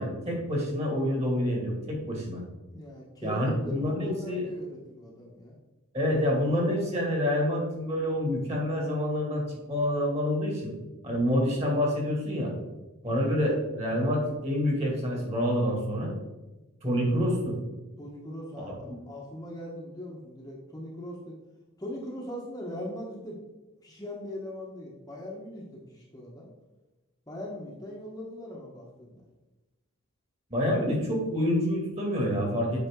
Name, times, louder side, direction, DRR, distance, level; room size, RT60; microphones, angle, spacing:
voice 1, 0.0-2.4 3.2-4.5 5.9-10.7 11.0-12.5 13.0-16.1 16.8-17.6 18.6-18.7 30.5-32.9, equal, 30° right, -1 dB, 2.3 m, -27 dB
voice 2, 2.7-5.5 18.0-21.4 21.8-23.4 23.8-26.5 27.3-29.2 30.6-30.7, left 1 dB, 15° left, -3 dB, 1.2 m, -40 dB
8.3 x 5.7 x 3.7 m, 1.1 s
head